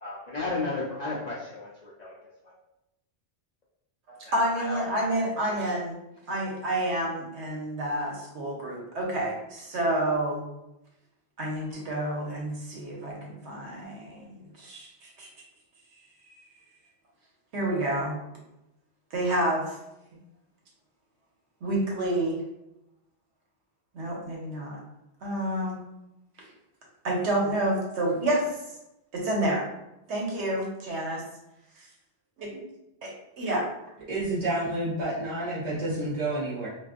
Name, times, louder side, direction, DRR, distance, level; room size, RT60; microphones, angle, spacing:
voice 1, 0.0-2.2 4.2-4.8 5.5-5.8, left 3 dB, 60° left, -6 dB, 0.4 m, -34 dB
voice 2, 4.1-6.0 6.3-10.5 11.4-15.3 17.5-18.2 19.1-19.8 21.6-22.4 23.9-24.8 25.2-25.8 27.0-28.7 29.1-29.7 30.1-31.2 32.4-32.6 33.0-33.6, right 1 dB, 70° right, -2 dB, 1.0 m, -29 dB
voice 3, 34.1-36.7, right 1 dB, 50° right, -9 dB, 0.6 m, -29 dB
2.4 x 2.4 x 2.4 m, 0.89 s
omnidirectional pair, 1.2 m